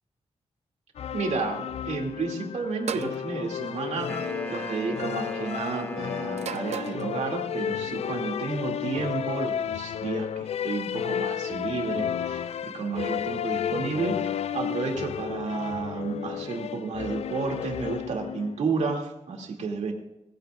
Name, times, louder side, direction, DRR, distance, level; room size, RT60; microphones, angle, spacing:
sound 1, 1.0-18.7, left 9 dB, 65° left, 0.4 m, -32 dB
voice 1, 1.1-19.9, right 4 dB, 85° right, 1 dB, 2.6 m, -31 dB
sound 2, 2.9-3.2 4.4-4.7 6.4-7.0, right 7 dB, 70° right, 0.7 m, -34 dB
Wind instrument woodwind instrument, 4.1-7.6, right 1 dB, 15° left, 1.8 m, -38 dB
20.5 x 15.5 x 2.5 m, 0.93 s
wide cardioid pair, 170°, 11 cm